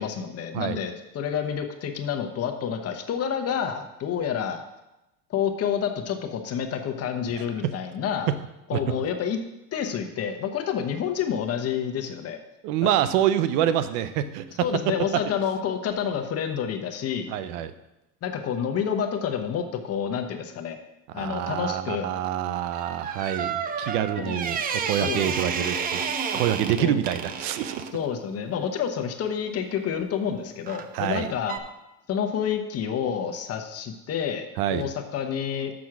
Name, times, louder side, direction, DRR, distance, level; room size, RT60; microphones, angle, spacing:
voice 1, 0.0-4.6 5.3-8.3 8.7-9.4 9.7-12.4 12.8-12.9 14.6-17.3 18.2-20.8 21.1-22.1 24.2-24.4 25.0-25.2 26.8-27.0 27.9-31.6 32.1-35.7, left 8 dB, 35° left, 5 dB, 0.9 m, -29 dB
voice 2, 7.4-7.7 8.7-8.8 12.6-14.7 17.3-17.7 21.1-26.0 26.3-27.9 30.9-31.3 34.6-34.9, right 11 dB, 85° right, 13 dB, 0.8 m, -26 dB
sound 1, 22.7-27.9 30.7-31.0 31.5-31.6, right 6 dB, 20° right, 0.4 m, -30 dB
6.2 x 6.2 x 5.9 m, 0.95 s
cardioid pair, 135°, 44 cm